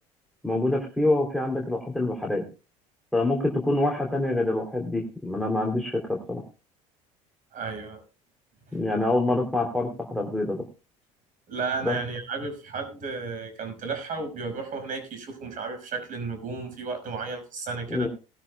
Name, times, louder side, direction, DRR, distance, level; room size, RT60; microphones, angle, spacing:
voice 1, 0.4-2.4 3.1-6.4 8.7-10.6 11.8-12.0 17.9-18.1, left 2 dB, ahead, 0 dB, 3.1 m, -26 dB
voice 2, 7.5-8.0 8.7-8.8 11.5-18.1, right 4 dB, 50° right, 7 dB, 5.5 m, -33 dB
19.0 x 13.5 x 2.3 m, 0.31 s
hypercardioid pair, 70°, 18 cm